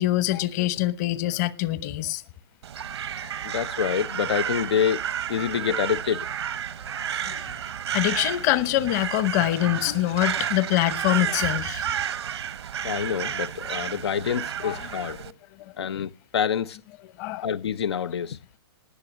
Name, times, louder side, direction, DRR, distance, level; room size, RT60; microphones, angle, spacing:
voice 1, 0.0-2.2 7.3-7.4 7.9-11.9 14.6-14.8 17.2-17.4, left 15 dB, 40° left, 1.0 m, -24 dB
Crow, 2.6-15.3, right 9 dB, 85° right, 1.1 m, -31 dB
voice 2, 3.4-5.0 5.3-6.3 12.8-15.2 15.8-16.8 17.4-18.4, left 8 dB, 80° left, 0.5 m, -27 dB
19.0 x 6.9 x 6.1 m
hypercardioid pair, 135°, 14 cm